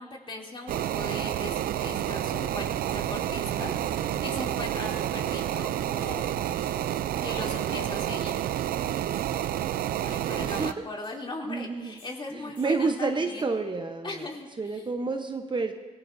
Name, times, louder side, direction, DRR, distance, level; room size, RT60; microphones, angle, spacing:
voice 1, 0.0-3.7 4.1-6.5 7.2-8.4 10.0-13.5 14.0-14.5 14.8-14.9, left 2 dB, 35° left, -1 dB, 3.2 m, -39 dB
sound 1, 0.7-10.7, right 11 dB, 80° right, 0.5 m, -29 dB
sound 2, 1.8-6.9, left 1 dB, 5° left, 4.7 m, -49 dB
sound 3, 2.9-3.1 3.8-4.2 4.8-5.1 6.0-6.2 6.6-6.9 7.4-7.8 9.1-9.5 10.5-11.1 12.0-12.2 12.5-12.8, left 3 dB, 70° left, 6.8 m, -55 dB
voice 2, 10.4-10.9 11.4-12.0 12.3-14.3 14.6-15.7, right 4 dB, 30° right, 5 dB, 1.0 m, -30 dB
26.5 x 18.0 x 2.7 m, 1.3 s
cardioid pair, 85°, 15 cm